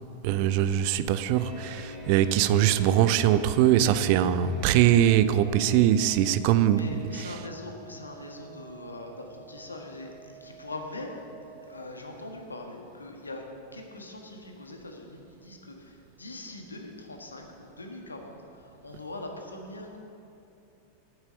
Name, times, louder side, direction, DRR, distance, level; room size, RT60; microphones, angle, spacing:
voice 1, 0.2-6.9 7.1-7.3, right 11 dB, 45° right, 13 dB, 0.5 m, -22 dB
sound 1, 1.3-7.6, left 3 dB, 20° left, 1.7 m, -45 dB
sound 2, 1.8-11.8, right 9 dB, 60° left, 1.9 m, -51 dB
voice 2, 6.7-11.3 11.6-13.5 13.7-20.0, left 2 dB, 80° left, 2 dB, 1.5 m, -42 dB
8.9 x 8.8 x 8.2 m, 2.8 s
figure-of-eight pair, 90°, 0 cm